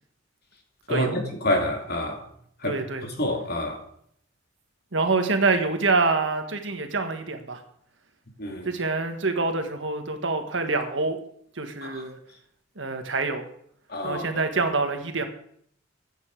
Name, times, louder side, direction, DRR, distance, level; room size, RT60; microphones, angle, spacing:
voice 1, 0.9-1.2 2.6-3.1 4.9-7.6 8.6-11.2 11.5-12.2 12.8-13.4 14.0-15.3, right 3 dB, 70° right, 1.6 m, -26 dB
voice 2, 1.4-2.2 2.6-2.7 3.2-3.8 8.4-8.7 11.8-11.9 13.9-14.2, left 1 dB, 55° left, 2.6 m, -26 dB
15.0 x 9.1 x 4.8 m
head